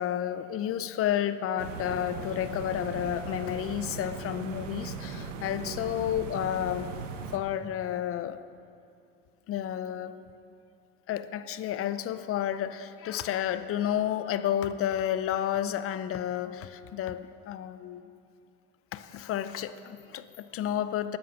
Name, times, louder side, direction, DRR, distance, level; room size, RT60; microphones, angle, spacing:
voice 1, 0.0-6.9 7.3-8.4 9.5-10.2 11.1-18.0 18.9-21.2, left 11 dB, 40° left, 13 dB, 0.6 m, -31 dB
sound 1, 1.6-7.4, right 6 dB, 90° right, 1.0 m, -39 dB
12.0 x 9.3 x 6.3 m, 2.5 s
hypercardioid pair, 90°, 37 cm